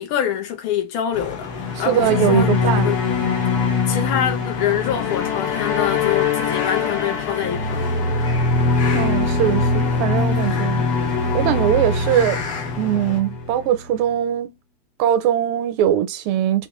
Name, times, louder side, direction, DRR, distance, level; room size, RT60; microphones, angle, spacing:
voice 1, 0.0-1.5 1.8-2.5 2.8-3.0 3.9-7.9, left 9 dB, 75° left, 1.5 m, -25 dB
sound 1, 1.1-13.2, left 5 dB, 55° left, 1.4 m, -34 dB
sound 2, 1.4-13.9, left 4 dB, 90° left, 2.2 m, -22 dB
voice 2, 1.9-3.0 8.9-10.9 11.3-12.4 12.8-14.5 15.0-16.7, right 10 dB, 80° right, 1.4 m, -21 dB
4.2 x 2.2 x 2.9 m
omnidirectional pair, 2.4 m